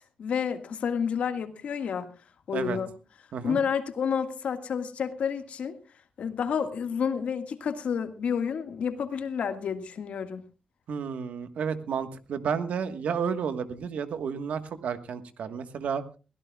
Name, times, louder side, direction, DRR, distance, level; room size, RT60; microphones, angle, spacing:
voice 1, 0.0-2.1 2.5-2.9 3.4-5.7 6.2-10.4, left 7 dB, 70° left, 7 dB, 1.8 m, -30 dB
voice 2, 10.9-16.0, right 6 dB, 85° right, 9 dB, 1.4 m, -31 dB
23.0 x 16.5 x 2.3 m, 0.33 s
wide cardioid pair, 165°, 2 cm